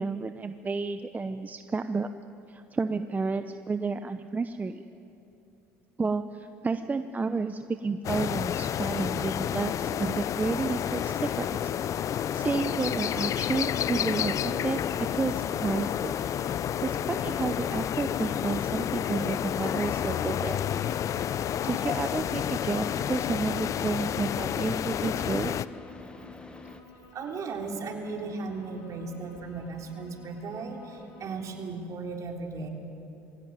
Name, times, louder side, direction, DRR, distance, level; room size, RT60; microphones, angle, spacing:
voice 1, 0.0-2.1 2.5-4.8 6.0-11.7 12.3-14.8 15.1-16.1 16.8-20.6 21.6-25.5, right 4 dB, 25° right, 9 dB, 0.8 m, -31 dB
sound 1, 8.0-25.7, left 10 dB, 50° left, 0.5 m, -30 dB
Car / Idling, 9.0-26.8, left 4 dB, 15° left, 1.6 m, -46 dB
sound 2, 13.1-31.4, left 3 dB, 75° left, 3.4 m, -54 dB
voice 2, 27.1-32.7, right 4 dB, 50° right, 2 dB, 3.4 m, -36 dB
22.0 x 16.5 x 9.5 m, 2.9 s
supercardioid pair, 75°, 7 cm